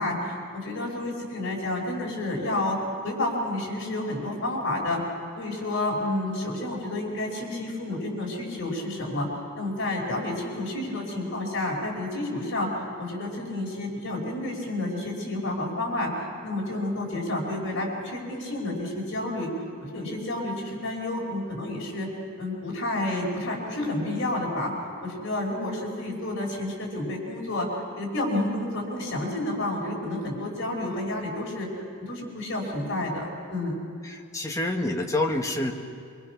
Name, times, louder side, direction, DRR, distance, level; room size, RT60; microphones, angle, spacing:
voice 1, 0.0-2.8 3.0-5.0 5.4-9.3 9.6-19.5 19.8-22.1 22.4-24.7 25.0-27.7 28.0-31.7 32.0-33.8, left 1 dB, 60° left, -1 dB, 5.2 m, -30 dB
voice 2, 34.1-35.7, left 2 dB, 15° left, 1 dB, 1.6 m, -27 dB
24.5 x 24.0 x 6.1 m, 2.3 s
head